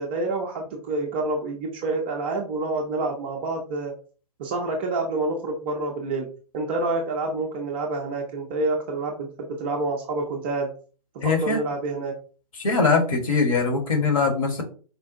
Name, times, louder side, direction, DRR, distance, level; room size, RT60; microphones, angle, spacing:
voice 1, 0.0-3.9 4.4-6.3 6.5-10.7 11.2-12.1, right 2 dB, 15° right, 0 dB, 0.3 m, -28 dB
voice 2, 11.2-11.6 12.6-14.6, left 4 dB, 55° left, 3 dB, 1.2 m, -22 dB
4.3 x 2.2 x 2.6 m, 0.39 s
figure-of-eight pair, 130°, 21 cm